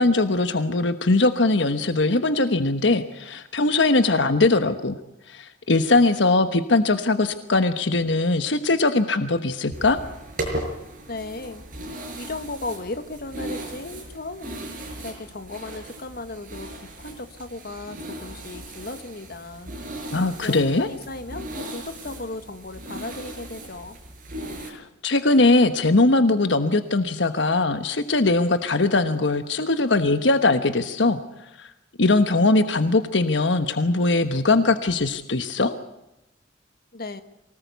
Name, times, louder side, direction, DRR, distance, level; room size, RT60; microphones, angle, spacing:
voice 1, 0.0-5.0 5.3-10.0 20.1-20.9 24.6-31.2 31.6-31.7 32.0-35.7, left 2 dB, 70° left, 9 dB, 1.2 m, -21 dB
sound 1, 9.7-24.7, right 1 dB, 45° right, 6.1 m, -37 dB
voice 2, 11.1-11.7 12.2-14.5 15.0-19.7 20.4-24.0 36.9-37.2, left 2 dB, 50° left, 9 dB, 1.5 m, -36 dB
24.0 x 19.0 x 8.3 m, 0.89 s
head